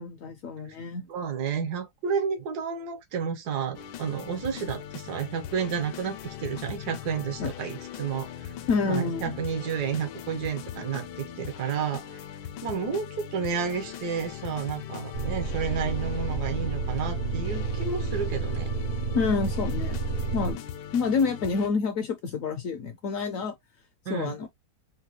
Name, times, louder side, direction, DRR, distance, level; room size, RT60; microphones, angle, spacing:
voice 1, 0.0-1.0 7.4-7.5 8.7-9.3 19.1-20.0 20.3-20.6 20.9-23.5 24.1-24.5, left 5 dB, 70° left, 0.8 m, -28 dB
voice 2, 1.1-8.5 8.8-12.2 12.6-18.7 24.1-24.4, right 6 dB, 75° right, 1.3 m, -31 dB
sound 1, 3.7-21.7, left 10 dB, 85° left, 1.2 m, -40 dB
sound 2, 15.1-20.5, right 3 dB, 55° right, 0.8 m, -30 dB
3.9 x 2.2 x 2.8 m
omnidirectional pair, 1.8 m